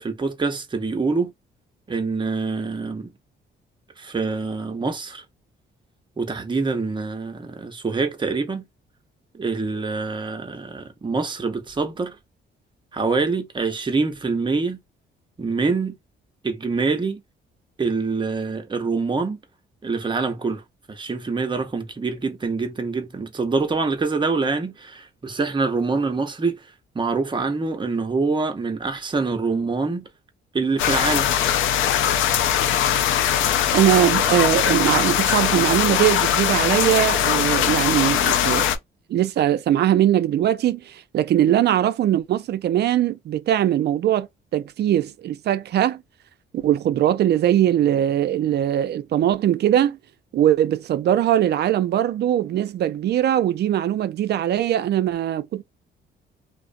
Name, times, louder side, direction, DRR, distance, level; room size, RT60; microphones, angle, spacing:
voice 1, 0.0-1.3 1.9-3.1 4.0-5.2 6.2-8.7 9.3-12.2 12.9-14.8 15.4-16.0 16.4-17.2 17.8-19.4 19.8-20.6 20.9-26.6 26.9-30.1 30.5-31.3, right 4 dB, 25° right, 0.7 m, -25 dB
sound 1, 30.8-38.8, left 9 dB, 80° left, 0.4 m, -21 dB
voice 2, 33.7-38.7 39.1-44.3 44.5-46.0 46.5-50.0 50.3-55.6, right 11 dB, 55° right, 0.4 m, -21 dB
2.4 x 2.0 x 2.5 m
cardioid pair, 90°, 20 cm